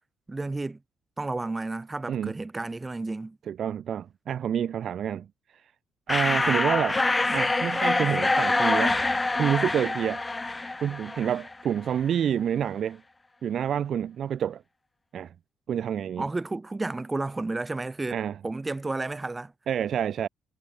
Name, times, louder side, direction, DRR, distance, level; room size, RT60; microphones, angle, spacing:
voice 1, 0.3-0.8 1.2-3.4 6.3-6.7 16.2-19.5, right 2 dB, 20° right, 3.8 m, -32 dB
voice 2, 3.5-5.3 5.5-5.7 6.1-7.0 7.3-9.0 9.4-10.2 10.8-13.0 13.4-14.6 15.1-15.3 15.7-16.2 18.1-18.4 19.7-20.3, right 9 dB, 60° right, 1.6 m, -28 dB
sound 1, 6.1-11.6, left 2 dB, 20° left, 0.6 m, -25 dB
cardioid pair, 90°, 0 cm